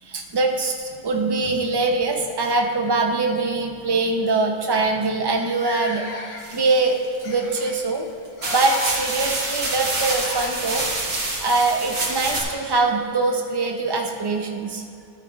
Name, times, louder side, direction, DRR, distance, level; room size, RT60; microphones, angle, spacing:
voice 1, 0.0-8.0 8.5-10.9 11.4-14.8, right 3 dB, 30° right, 2 dB, 0.5 m, -23 dB
sound 1, 0.7-1.8 2.9-3.0 3.4-3.6 4.3-4.4 4.6-4.7 5.3-6.7 7.2-7.8 8.3-8.9 10.0-10.5 12.7-12.8 13.8-13.9, left 4 dB, 75° left, 1.3 m, -37 dB
sound 2, 6.4-7.3 7.9-8.0 8.4-12.4, right 2 dB, 85° right, 1.8 m, -27 dB
12.5 x 9.2 x 2.4 m, 2.5 s
omnidirectional pair, 1.3 m